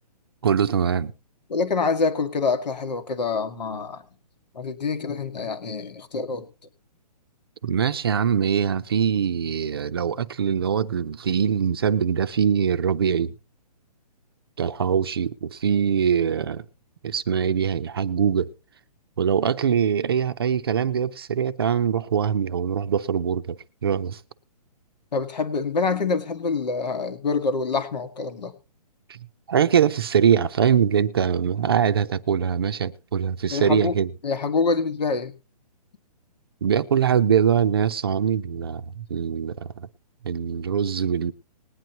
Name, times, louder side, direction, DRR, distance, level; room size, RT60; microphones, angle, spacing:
voice 1, 0.4-1.1 7.6-13.3 14.6-16.6 17.0-18.5 19.2-24.2 29.5-34.1 36.6-39.9 40.2-41.3, right 8 dB, 35° right, 0.5 m, -23 dB
voice 2, 1.5-4.0 4.5-6.5 25.1-28.5 33.5-34.0 34.2-35.3, left 4 dB, 90° left, 1.8 m, -26 dB
20.5 x 9.3 x 2.9 m
hypercardioid pair, 175°, 21 cm